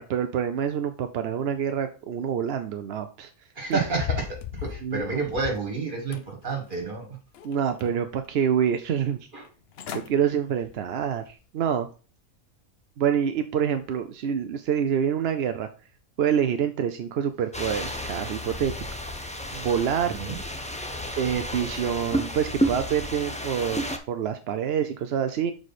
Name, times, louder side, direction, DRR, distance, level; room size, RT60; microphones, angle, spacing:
voice 1, 0.0-3.3 3.7-3.8 4.8-5.2 7.4-9.2 9.9-11.9 13.0-15.7 16.2-18.7 19.5-20.2 21.2-25.5, right 8 dB, 60° right, 8 dB, 0.6 m, -26 dB
voice 2, 3.6-7.2 9.3-9.5 20.2-20.4, right 4 dB, 35° right, 2 dB, 2.0 m, -30 dB
sound 1, 3.7-5.7 6.1-7.0 7.3-8.2 8.6-8.7 9.4-9.5 9.7-10.1 10.6-10.8 11.3-11.4, left 9 dB, 55° left, 0.7 m, -36 dB
sound 2, 17.5-24.0, equal, 10° left, 0.3 m, -31 dB
6.4 x 4.8 x 4.1 m, 0.35 s
omnidirectional pair, 1.5 m